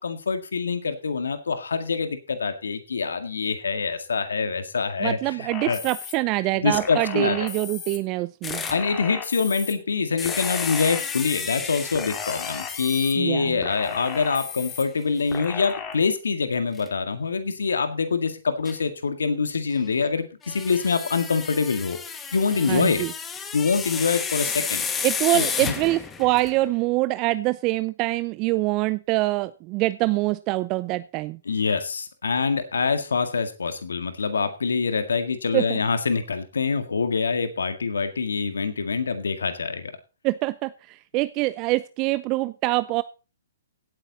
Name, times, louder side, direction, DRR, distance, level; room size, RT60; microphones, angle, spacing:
voice 1, 0.0-5.8 6.6-7.4 8.7-22.0 22.3-23.0 23.5-24.8 25.3-25.7 31.5-39.9, left 5 dB, 80° left, 8 dB, 1.9 m, -25 dB
voice 2, 5.0-8.7 13.2-13.6 22.7-23.1 25.0-31.4 35.5-35.8 40.2-43.0, right 20 dB, 35° right, 16 dB, 0.5 m, -25 dB
sound 1, 5.5-6.1 6.7-8.0 8.5-9.7 10.2-11.5 11.9-13.1 13.6-14.8 15.3-15.9, left 7 dB, 30° left, 3.7 m, -35 dB
sound 2, 8.4-8.9 10.2-13.2 13.9-14.0 14.4-14.5 16.8-16.9 18.7-18.8 20.4-26.6, left 6 dB, 15° left, 1.8 m, -32 dB
16.5 x 9.2 x 4.0 m, 0.33 s
hypercardioid pair, 130°, 0 cm